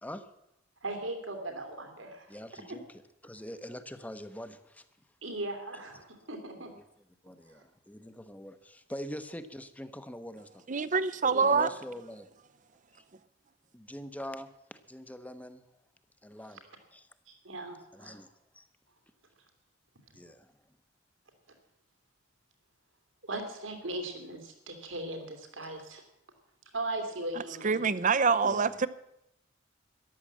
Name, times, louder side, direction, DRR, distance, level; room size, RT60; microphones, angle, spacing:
voice 1, 0.8-2.4 2.7-2.8 5.2-6.7 11.3-11.7 17.3-18.2 23.2-26.0 26.7-27.8, right 2 dB, 85° right, 2.9 m, -38 dB
voice 2, 2.3-2.9 3.2-4.8 6.6-6.8 7.2-10.7 11.5-12.3 12.9-13.0 13.7-15.6 16.2-16.6 16.9-17.1 17.9-18.3 18.5-18.7 20.1-20.5 25.6-25.7 28.4-28.8, equal, 10° left, 0.9 m, -44 dB
voice 3, 10.7-11.7 27.6-28.9, right 5 dB, 40° right, 0.6 m, -25 dB
13.5 x 11.5 x 7.5 m
head